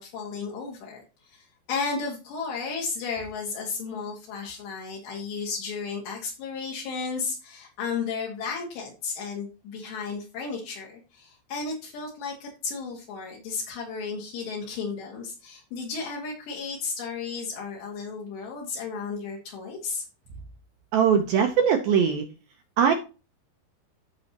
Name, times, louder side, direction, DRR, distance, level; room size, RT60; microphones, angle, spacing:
voice 1, 0.0-20.0, left 5 dB, 70° left, -2 dB, 4.0 m, -34 dB
voice 2, 20.9-22.2 22.8-22.9, right 7 dB, 75° right, 3 dB, 2.2 m, -21 dB
14.5 x 5.4 x 2.9 m, 0.31 s
omnidirectional pair, 5.2 m